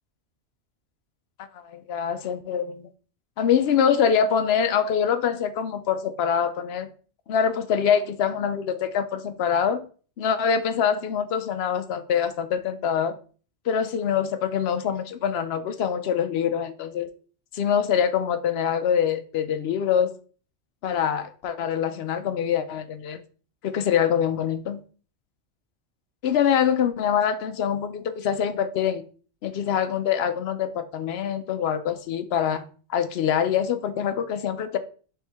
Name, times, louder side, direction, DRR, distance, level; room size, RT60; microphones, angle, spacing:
voice 1, 1.6-2.9 3.4-6.9 7.3-9.8 10.2-13.2 13.7-17.1 17.5-20.2 20.8-23.2 23.6-24.8 26.2-29.0 29.4-32.6 32.9-34.8, left 8 dB, 65° left, 0.7 m, -24 dB
4.5 x 3.4 x 3.4 m
omnidirectional pair, 1.2 m